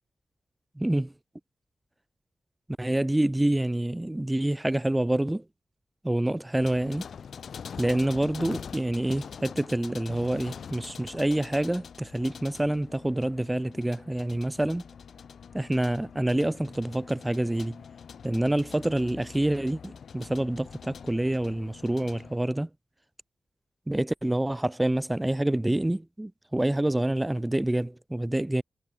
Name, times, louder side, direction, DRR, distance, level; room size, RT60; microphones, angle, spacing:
voice 1, 0.8-1.1 2.8-5.4 6.0-7.1 7.8-14.8 15.5-17.8 18.2-22.7 23.9-28.6, right 1 dB, 10° right, 0.4 m, -27 dB
sound 1, 6.6-22.4, left 7 dB, 75° left, 0.9 m, -44 dB
wide cardioid pair, 125°, 0 cm